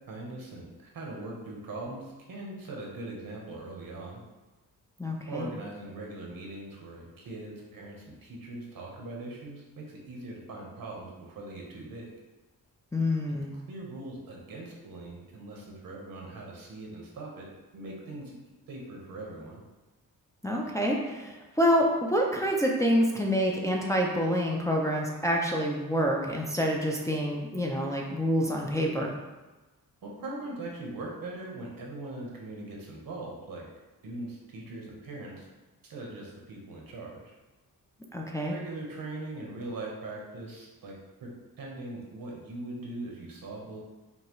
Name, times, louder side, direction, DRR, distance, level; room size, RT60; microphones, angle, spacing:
voice 1, 0.1-4.2 5.3-12.1 13.3-17.5 17.7-18.3 18.7-19.6 30.0-33.7 34.0-35.5 35.8-37.3 38.5-41.3 41.6-43.8, right 2 dB, 70° right, -2 dB, 1.1 m, -41 dB
voice 2, 5.0-5.5 12.9-13.5 20.4-29.1 38.1-38.5, equal, 10° left, -2 dB, 0.5 m, -27 dB
5.5 x 2.3 x 3.0 m, 1.1 s
cardioid pair, 100°, 36 cm